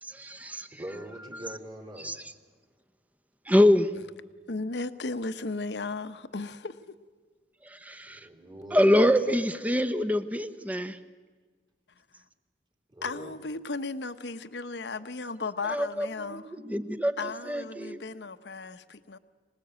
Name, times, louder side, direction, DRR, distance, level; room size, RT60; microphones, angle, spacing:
voice 1, 0.0-0.8 2.0-2.2 3.5-3.9 7.6-8.3 8.7-11.0 15.7-18.0, left 1 dB, 10° right, 0.9 m, -25 dB
voice 2, 0.7-2.1 8.1-8.8 9.3-9.4 12.9-13.3, right 1 dB, 30° right, 3.6 m, -43 dB
voice 3, 4.5-6.8 13.0-16.4 17.2-19.2, left 3 dB, 75° left, 0.9 m, -35 dB
25.5 x 19.5 x 8.2 m
head